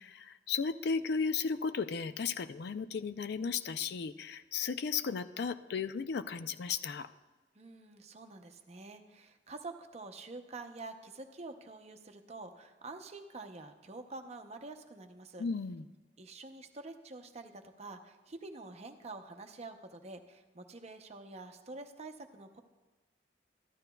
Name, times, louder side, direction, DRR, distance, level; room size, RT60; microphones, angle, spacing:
voice 1, 0.0-7.1 15.4-15.8, left 5 dB, 65° left, 12 dB, 0.4 m, -35 dB
voice 2, 7.5-15.4 16.2-22.6, right 3 dB, 40° right, 6 dB, 0.7 m, -47 dB
14.0 x 12.0 x 2.3 m, 1.2 s
head